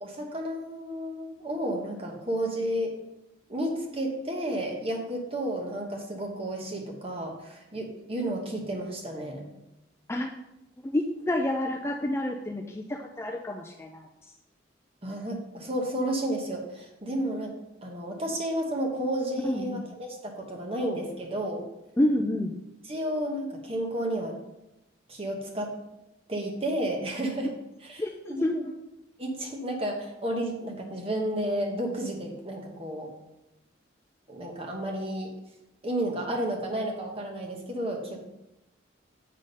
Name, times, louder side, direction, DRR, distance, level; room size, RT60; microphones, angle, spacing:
voice 1, 0.0-2.9 3.5-9.5 15.0-17.5 17.8-21.6 22.9-24.3 25.1-25.7 26.3-27.5 27.8-28.0 28.3-28.7 29.2-33.1 34.3-35.3 35.8-38.2, right 1 dB, 30° right, 1 dB, 1.1 m, -32 dB
voice 2, 10.8-14.1 19.4-19.8 22.0-22.5 28.0-28.1 28.4-28.7, left 1 dB, 15° left, 1 dB, 0.3 m, -28 dB
7.6 x 3.7 x 5.3 m, 0.92 s
head